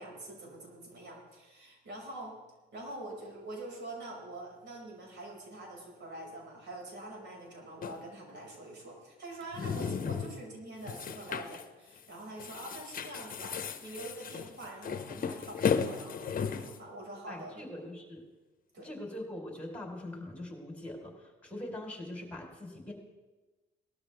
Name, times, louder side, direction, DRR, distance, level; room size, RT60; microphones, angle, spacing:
voice 1, 0.0-2.4 2.7-17.6 18.7-18.9, right 2 dB, 60° right, -2 dB, 5.8 m, -45 dB
sound 1, 7.8-8.0 9.4-10.4 10.8-11.6 12.0-12.1 12.4-16.8, left 6 dB, 45° left, 0.9 m, -35 dB
voice 2, 17.3-18.2 18.8-22.9, left 1 dB, 5° left, 0 dB, 4.4 m, -42 dB
19.0 x 13.0 x 3.6 m, 1.2 s
cardioid pair, 90°, 20 cm